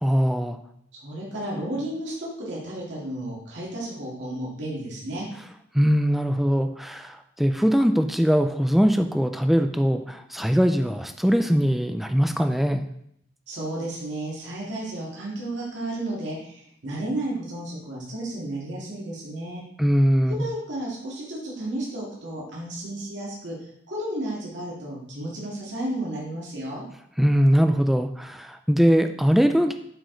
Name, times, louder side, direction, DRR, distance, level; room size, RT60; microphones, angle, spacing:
voice 1, 0.0-0.6 5.7-12.9 19.8-20.4 27.2-29.7, equal, ahead, 6 dB, 0.3 m, -21 dB
voice 2, 1.0-5.3 13.5-19.6 20.4-23.5 23.9-26.8, right 1 dB, 75° right, -5 dB, 2.2 m, -32 dB
7.5 x 5.1 x 3.9 m, 0.72 s
head